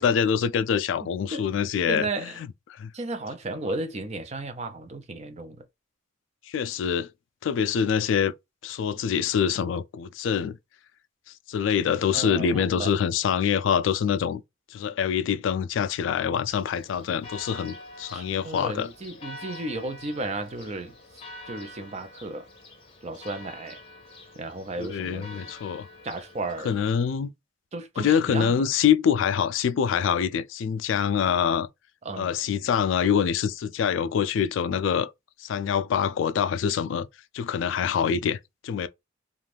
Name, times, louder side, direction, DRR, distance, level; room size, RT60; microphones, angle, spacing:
voice 1, 0.0-2.5 2.8-2.9 6.5-7.1 7.4-8.3 8.6-10.6 11.5-14.4 14.7-18.9 24.8-25.9 26.6-27.3 28.0-31.7 32.2-35.1 35.4-37.1 37.3-38.9, left 7 dB, 70° left, 0.3 m, -25 dB
voice 2, 1.0-2.4 2.9-5.6 12.1-12.9 18.1-20.9 21.5-22.4 23.0-23.8 24.3-25.5 26.0-26.7 27.7-28.6 32.0-32.3, right 2 dB, 35° right, 0.5 m, -34 dB
Church bell, 16.4-27.1, left 2 dB, 30° left, 0.6 m, -46 dB
2.5 x 2.2 x 3.2 m
head